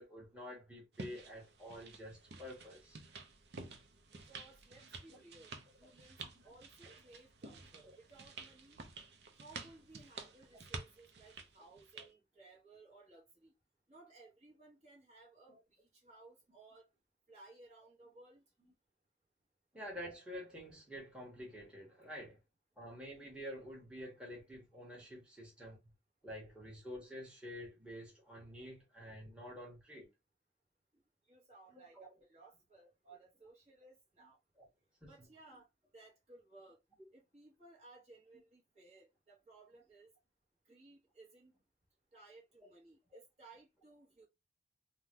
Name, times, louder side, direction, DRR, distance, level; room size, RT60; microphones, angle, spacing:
voice 1, 0.0-3.0 5.1-5.2 6.2-6.3 6.9-7.0 7.8-8.0 12.0-12.1 15.5-15.6 18.6-18.7 19.7-22.4 22.8-25.8 26.2-30.1 31.7-32.1 34.6-34.7 35.0-35.1, equal, 5° right, 1.1 m, -49 dB
sound 1, 0.9-12.1, right 4 dB, 60° right, 0.6 m, -51 dB
voice 2, 4.1-8.8 9.4-13.5 13.9-16.9 17.3-18.4 31.3-34.4 35.1-35.7 35.9-36.8 37.1-40.1 40.6-41.6 42.1-44.3, right 3 dB, 35° right, 1.1 m, -60 dB
3.6 x 2.2 x 2.8 m
head